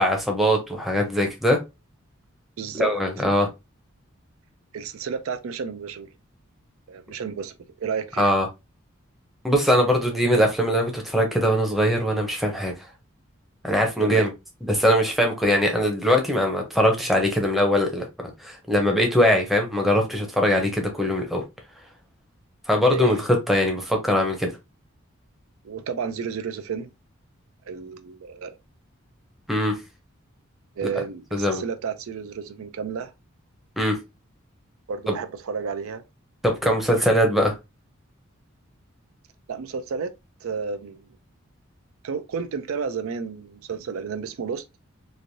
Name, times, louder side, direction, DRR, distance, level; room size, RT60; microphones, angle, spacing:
voice 1, 0.0-1.6 2.8-3.5 8.2-8.5 9.4-12.7 13.6-14.3 14.7-21.4 22.7-23.2 23.5-24.5 29.5-29.7 31.3-31.6 33.8-34.0 35.1-35.2 36.4-37.5, equal, ahead, 0.6 m, -21 dB
voice 2, 2.6-2.9 4.7-6.1 6.9-8.4 14.0-14.3 22.9-23.2 25.6-26.9 27.6-28.6 30.8-33.1 34.9-36.0 39.5-40.1 40.4-41.1 42.0-44.7, right 6 dB, 80° right, 0.4 m, -31 dB
3.1 x 2.5 x 2.6 m
head